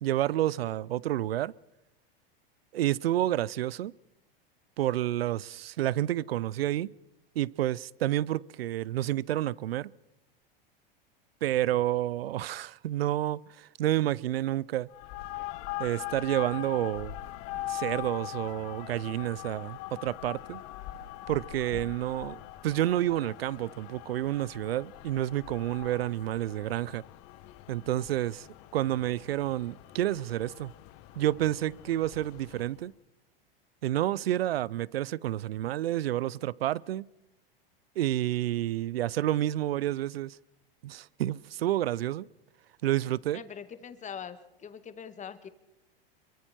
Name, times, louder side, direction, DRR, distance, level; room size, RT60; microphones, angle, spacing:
voice 1, 0.0-1.5 2.7-3.9 4.8-6.9 7.4-9.9 11.4-14.9 15.8-17.1 17.5-20.6 21.3-27.0 27.7-28.5 28.7-30.7 31.2-32.9 33.8-37.0 38.0-40.4 40.8-42.3 42.8-43.4, right 13 dB, 85° right, 0.6 m, -29 dB
sound 1, 14.9-32.8, left 15 dB, 50° left, 1.3 m, -42 dB
voice 2, 43.3-45.5, left 7 dB, 25° left, 1.9 m, -43 dB
26.0 x 23.5 x 4.4 m
hypercardioid pair, 105°, 29 cm